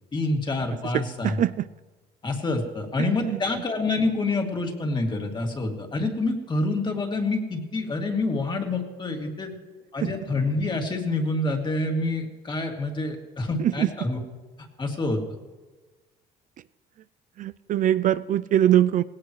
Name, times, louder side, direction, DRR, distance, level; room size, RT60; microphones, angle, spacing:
voice 1, 0.1-1.4 2.2-9.5 9.9-14.2 14.8-15.2, left 2 dB, 25° left, 2 dB, 2.4 m, -27 dB
voice 2, 0.9-1.7 3.3-3.4 10.0-10.1 13.6-13.9 17.4-19.0, right 11 dB, 50° right, 15 dB, 0.4 m, -22 dB
18.0 x 17.5 x 3.2 m, 1.3 s
cardioid pair, 110°, 17 cm